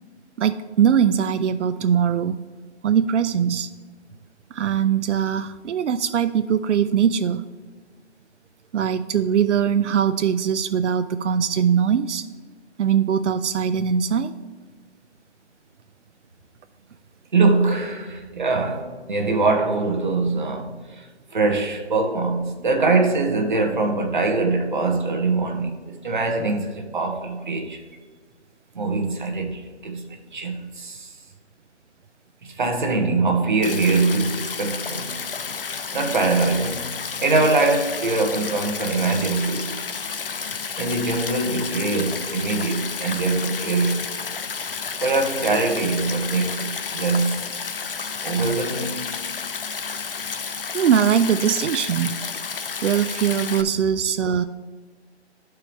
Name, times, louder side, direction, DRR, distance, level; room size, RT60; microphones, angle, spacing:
voice 1, 0.4-2.4 2.8-3.7 4.5-7.4 8.7-12.2 12.8-14.3 50.7-52.2 52.8-54.4, right 8 dB, 85° right, 0.5 m, -21 dB
voice 2, 17.3-21.1 21.3-27.8 28.7-31.1 32.4-35.2 35.9-39.8 40.8-44.1 45.0-47.5 48.2-49.1, right 3 dB, 45° right, 1.0 m, -23 dB
Stream, 33.6-53.6, left 5 dB, 55° left, 0.5 m, -31 dB
11.5 x 4.6 x 3.3 m
hypercardioid pair, 175°, 34 cm